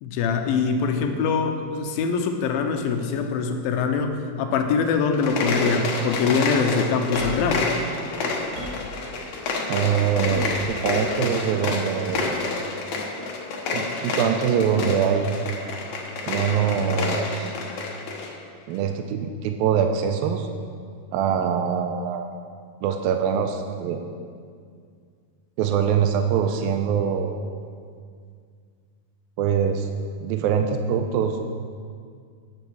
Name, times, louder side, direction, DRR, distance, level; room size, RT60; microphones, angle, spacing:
voice 1, 0.0-7.7, left 5 dB, 80° left, 5 dB, 2.5 m, -23 dB
sound 1, 5.1-18.3, left 3 dB, 60° left, 2.3 m, -29 dB
sound 2, 7.1-7.6 8.1-8.9 10.2-10.8 12.0-12.2, equal, 65° right, 4.1 m, -35 dB
voice 2, 9.7-12.4 13.7-15.5 16.3-17.5 18.7-20.5 21.1-22.3 22.8-24.0 25.6-27.4 29.4-29.9 30.2-31.6, right 7 dB, 80° right, 6 dB, 2.3 m, -23 dB
12.5 x 9.6 x 4.7 m, 2.1 s
omnidirectional pair, 4.3 m